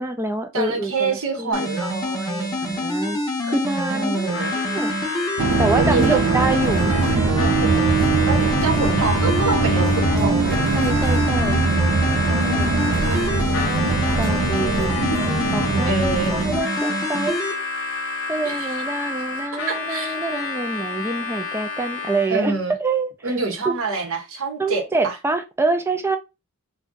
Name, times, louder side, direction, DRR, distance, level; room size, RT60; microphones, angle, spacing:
voice 1, 0.0-1.7 2.6-3.2 3.5-4.9 5.6-7.0 9.9-10.3 10.7-11.6 12.3-12.8 13.6-15.1 15.5-15.9 16.3-17.4 18.3-22.5 22.8-23.1 23.7-23.8 24.6-26.2, right 2 dB, 10° right, 0.3 m, -26 dB
voice 2, 0.5-2.6 3.9-4.5 5.7-6.2 7.4-8.0 8.3-10.6 12.7-13.2 15.9-16.4 18.4-18.8 19.5-20.2 22.3-22.7 23.2-25.2, right 4 dB, 65° right, 0.9 m, -26 dB
sound 1, 1.5-17.5, left 1 dB, 15° left, 0.7 m, -27 dB
Harmonica, 4.3-22.5, left 4 dB, 55° left, 0.6 m, -30 dB
sound 2, 5.4-16.6, right 3 dB, 80° right, 0.5 m, -21 dB
2.6 x 2.3 x 3.7 m
head